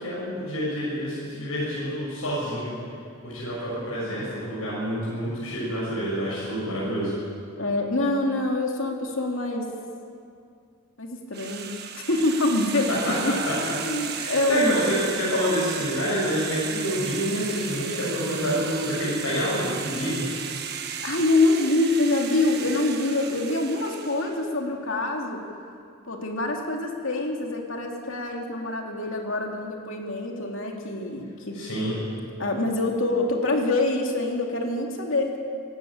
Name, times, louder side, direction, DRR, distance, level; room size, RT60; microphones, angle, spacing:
voice 1, 0.0-2.7 3.2-7.1 13.0-13.1 13.5-13.6 14.1-20.2 31.5-32.0, equal, 80° left, -7 dB, 7.0 m, -27 dB
voice 2, 7.6-9.7 11.0-14.8 21.0-25.4 26.1-31.6 32.4-35.4, left 2 dB, 65° left, 2 dB, 2.8 m, -25 dB
sound 1, 11.3-24.4, right 8 dB, 45° right, 1.6 m, -35 dB
24.0 x 14.0 x 8.9 m, 2.4 s
head